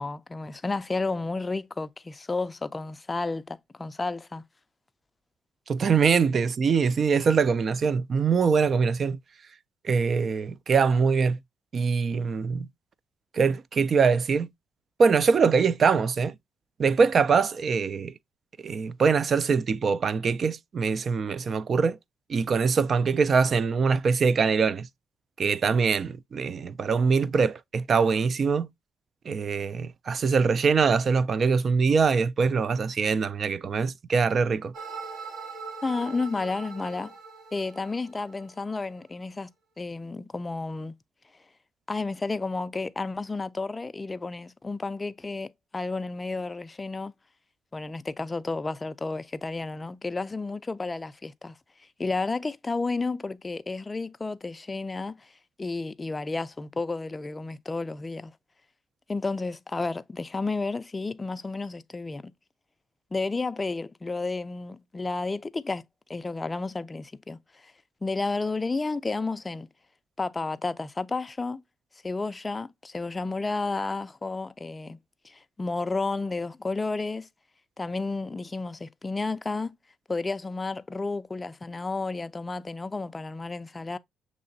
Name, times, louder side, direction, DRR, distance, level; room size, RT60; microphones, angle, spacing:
voice 1, 0.0-4.4 35.8-37.1 37.5-39.5 39.8-40.9 41.9-47.1 47.7-51.5 52.0-55.3 55.6-58.3 59.1-62.3 63.1-67.7 68.0-69.7 70.2-71.6 72.0-75.0 75.2-77.3 77.8-79.7 80.1-84.0, left 3 dB, 25° left, 0.4 m, -32 dB
voice 2, 5.7-9.2 9.8-11.4 11.7-12.7 13.3-14.5 15.0-16.3 16.8-18.1 18.6-22.0 22.3-24.9 25.4-28.7 29.3-34.7, right 5 dB, 50° right, 0.3 m, -23 dB
sound 1, 34.7-38.7, right 5 dB, 65° right, 1.4 m, -41 dB
6.6 x 3.0 x 2.6 m
cardioid pair, 90°, 0 cm